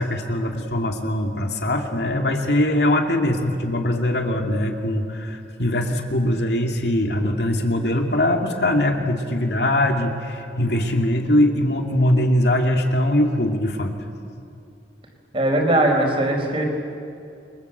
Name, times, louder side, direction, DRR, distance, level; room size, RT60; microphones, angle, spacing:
voice 1, 0.0-14.0, left 1 dB, 65° left, 3 dB, 2.5 m, -21 dB
voice 2, 15.3-16.7, right 1 dB, 30° right, 1 dB, 4.7 m, -20 dB
28.5 x 23.5 x 8.1 m, 2.5 s
head